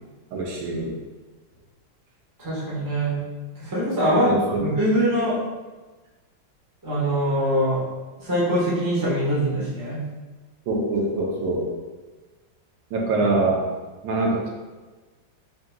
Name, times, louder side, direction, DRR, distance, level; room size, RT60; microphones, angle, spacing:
voice 1, 0.3-0.9 4.2-4.6 10.7-11.6 12.9-13.6 14.0-14.5, right 2 dB, 75° right, -2 dB, 1.5 m, -24 dB
voice 2, 2.4-3.2 3.6-4.3 4.6-5.4 6.8-7.8 8.2-10.0, equal, 20° right, -7 dB, 0.5 m, -23 dB
4.4 x 3.7 x 2.2 m, 1.3 s
omnidirectional pair, 2.2 m